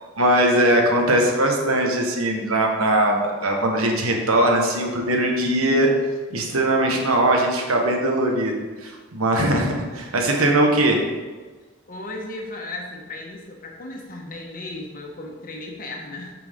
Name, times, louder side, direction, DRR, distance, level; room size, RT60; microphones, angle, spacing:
voice 1, 0.2-5.9 6.3-11.0, right 1 dB, 85° right, 1 dB, 1.4 m, -20 dB
voice 2, 11.9-16.3, left 2 dB, 40° left, 0 dB, 1.2 m, -35 dB
9.0 x 6.1 x 3.7 m, 1.3 s
head